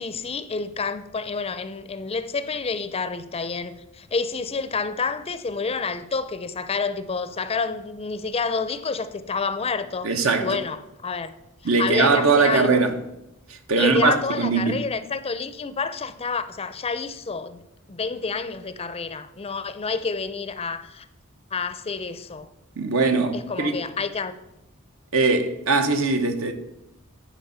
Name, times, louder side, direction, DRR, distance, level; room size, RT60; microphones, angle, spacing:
voice 1, 0.0-10.1 10.4-10.8 11.0-11.3 11.8-12.8 13.8-17.6 17.9-21.1 21.5-22.5 23.3-24.3, left 4 dB, 30° left, 0.5 m, -28 dB
voice 2, 10.0-10.6 11.6-13.0 13.5-14.8 22.8-23.8 25.1-26.5, right 4 dB, 70° right, 1.0 m, -21 dB
10.0 x 5.1 x 5.6 m
head